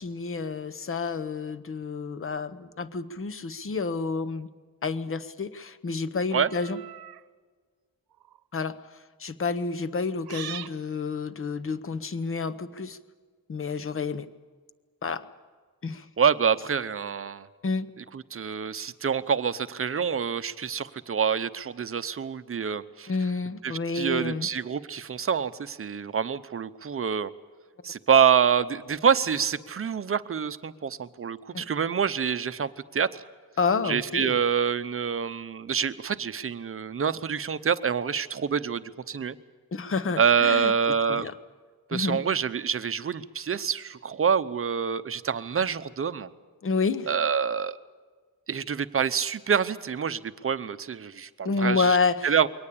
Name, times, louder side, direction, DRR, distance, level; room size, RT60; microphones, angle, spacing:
voice 1, 0.0-4.5 4.8-6.8 8.5-8.8 9.2-13.0 13.5-14.3 15.0-15.3 15.8-16.1 17.6-17.9 23.1-24.5 31.5-31.7 33.6-34.4 39.7-40.7 41.1-41.3 41.9-42.2 46.6-47.1 51.4-52.5, left 4 dB, 35° left, 13 dB, 0.9 m, -29 dB
sound 1, 6.3-7.2 8.1-8.4 10.2-10.8, right 11 dB, 85° right, 0.8 m, -41 dB
voice 2, 16.2-17.5 18.1-23.1 23.6-27.3 27.8-33.2 33.8-39.4 40.2-41.3 41.9-46.3 47.1-47.8 48.5-52.0 52.2-52.5, right 7 dB, 40° right, 13 dB, 0.8 m, -26 dB
22.5 x 18.5 x 8.5 m, 1.5 s
wide cardioid pair, 180°, 36 cm